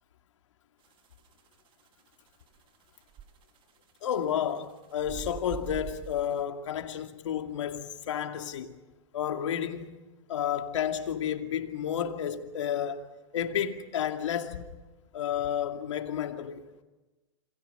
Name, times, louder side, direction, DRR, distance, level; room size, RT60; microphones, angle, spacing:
sound 1, 0.8-6.4, right 8 dB, 30° right, 1.7 m, -44 dB
voice 1, 4.0-8.8 9.1-10.0 10.3-13.0 13.3-14.6 15.1-16.6, left 9 dB, 75° left, 2.4 m, -31 dB
28.0 x 27.5 x 5.6 m
hypercardioid pair, 120°, 16 cm